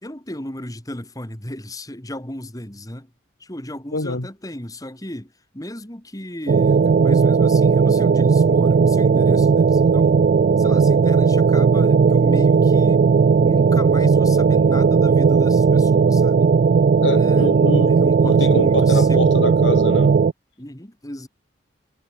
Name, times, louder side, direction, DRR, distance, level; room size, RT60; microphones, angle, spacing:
voice 1, 0.0-3.1 3.4-10.2 10.6-13.1 13.4-16.6 17.1-17.5 17.9-19.5 20.6-21.3, left 1 dB, 20° left, 2.8 m, -35 dB
voice 2, 3.9-4.3 17.0-20.2, left 2 dB, 75° left, 2.4 m, -25 dB
sound 1, 6.5-20.3, right 5 dB, 50° right, 0.3 m, -16 dB
head